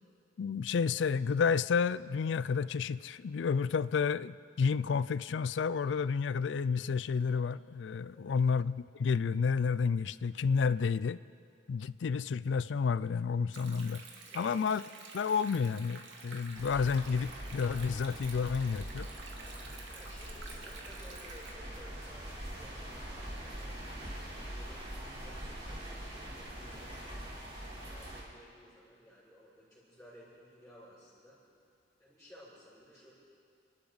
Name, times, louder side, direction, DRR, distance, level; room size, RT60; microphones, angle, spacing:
voice 1, 0.4-11.2 11.7-14.0 14.3-14.8 15.1-19.1, left 5 dB, 80° left, 17 dB, 0.4 m, -30 dB
Stream, 13.5-21.5, right 4 dB, 85° right, 2.1 m, -50 dB
voice 2, 14.3-14.7 19.9-27.0 27.6-31.4 32.0-33.1, equal, 5° left, -12 dB, 5.5 m, -57 dB
sound 1, 16.5-28.2, right 1 dB, 30° right, 3.6 m, -43 dB
29.0 x 12.0 x 4.0 m, 2.3 s
head